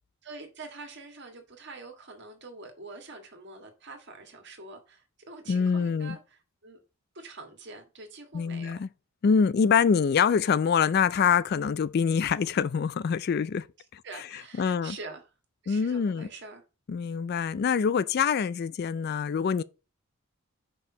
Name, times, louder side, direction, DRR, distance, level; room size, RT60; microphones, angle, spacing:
voice 1, 0.2-6.8 7.1-8.8 9.6-9.9 14.0-15.3 15.6-16.6, right 3 dB, 55° right, 1.6 m, -45 dB
voice 2, 5.5-6.2 8.3-8.9 9.2-13.7 13.9-14.0 14.6-15.0 15.7-16.3 16.9-19.6, left 6 dB, 45° left, 0.3 m, -25 dB
5.3 x 4.5 x 5.9 m
head